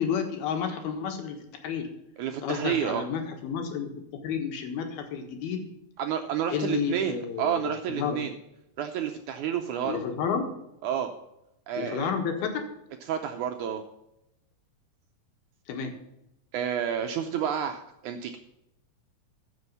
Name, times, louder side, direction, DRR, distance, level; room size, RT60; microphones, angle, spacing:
voice 1, 0.0-1.9 2.4-5.7 6.5-8.2 9.8-10.5 11.8-12.7 15.7-16.0, left 7 dB, 90° left, 5 dB, 3.4 m, -31 dB
voice 2, 2.2-3.1 6.0-8.3 8.8-10.0 10.8-11.1 11.7-12.1 13.1-13.8 16.5-18.4, right 9 dB, 75° right, 5 dB, 1.8 m, -30 dB
14.5 x 6.4 x 5.5 m, 0.84 s
omnidirectional pair, 4.3 m